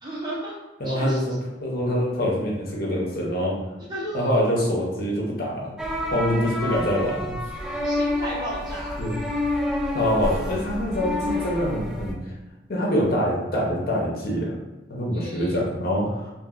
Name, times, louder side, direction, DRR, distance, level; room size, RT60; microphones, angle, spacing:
voice 1, 0.0-0.6 0.8-1.2 3.9-4.4 7.8-9.0 15.1-15.6, right 1 dB, 25° right, -6 dB, 0.7 m, -33 dB
voice 2, 0.8-3.6 4.1-5.7 6.1-7.3 9.0-9.2 9.9-12.3 12.7-14.5 14.9-16.3, equal, 55° left, -3 dB, 0.7 m, -25 dB
sound 1, 5.8-12.1, left 1 dB, 5° right, 0.3 m, -28 dB
2.9 x 2.7 x 2.4 m, 1.1 s
head